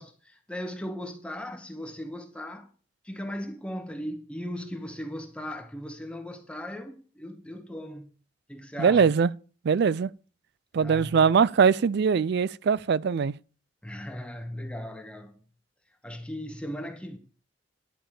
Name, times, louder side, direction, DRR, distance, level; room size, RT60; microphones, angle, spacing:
voice 1, 0.0-2.7 3.0-8.1 8.5-9.0 10.7-11.2 13.8-15.4 16.0-17.2, equal, 5° left, 0.9 m, -38 dB
voice 2, 8.8-9.3 9.6-10.1 10.7-13.3, right 6 dB, 60° right, 0.4 m, -22 dB
11.0 x 5.1 x 7.5 m
head